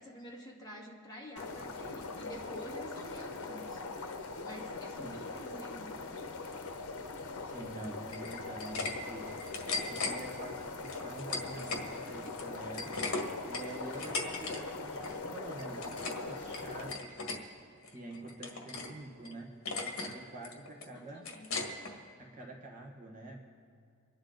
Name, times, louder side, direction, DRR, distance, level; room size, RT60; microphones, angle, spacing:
voice 1, 0.0-3.8 4.4-6.3 20.9-21.9, equal, 20° left, -3 dB, 2.0 m, -49 dB
sound 1, 1.4-16.9, left 3 dB, 85° left, 0.9 m, -41 dB
voice 2, 7.4-9.3 9.8-17.2 17.5-19.5 20.0-21.3 22.2-23.4, right 2 dB, 35° right, 0 dB, 1.5 m, -47 dB
sound 2, 8.1-8.9 9.2-10.1 10.8-11.9 12.2-14.6 14.8-15.2 15.6-16.2 16.5-17.4 17.8-18.9 19.2-19.3 19.7-20.1 20.4-21.9, left 3 dB, 65° left, 1.8 m, -37 dB
25.5 x 10.5 x 3.9 m, 2.3 s
head